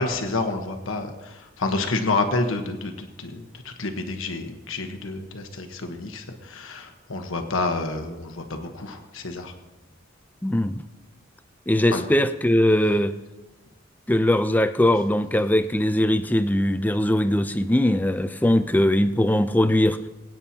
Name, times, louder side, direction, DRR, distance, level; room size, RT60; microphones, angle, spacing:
voice 1, 0.0-9.5 11.9-12.0, left 2 dB, 85° left, 5 dB, 1.2 m, -29 dB
voice 2, 10.4-10.8 11.7-13.1 14.1-20.0, left 1 dB, 10° left, 10 dB, 0.5 m, -21 dB
22.5 x 9.1 x 2.9 m, 1.1 s
head